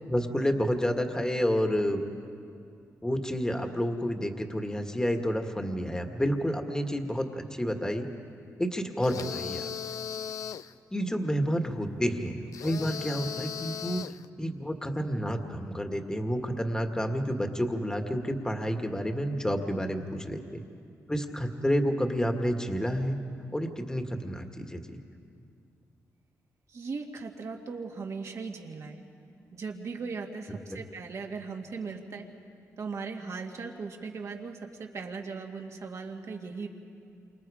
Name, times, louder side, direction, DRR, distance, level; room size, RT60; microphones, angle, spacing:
voice 1, 0.1-2.0 3.0-8.1 8.6-9.7 10.9-14.0 14.4-20.6 21.1-23.2 23.5-25.0 30.7-30.8, equal, 10° left, 5 dB, 1.8 m, -29 dB
sound 1, 9.0-10.7 12.5-14.3, left 8 dB, 80° left, 0.5 m, -37 dB
voice 2, 26.7-29.0 29.5-32.3 32.8-36.7, right 4 dB, 60° right, 2 dB, 2.3 m, -38 dB
28.5 x 25.5 x 5.0 m, 2.4 s
cardioid pair, 70°, 6 cm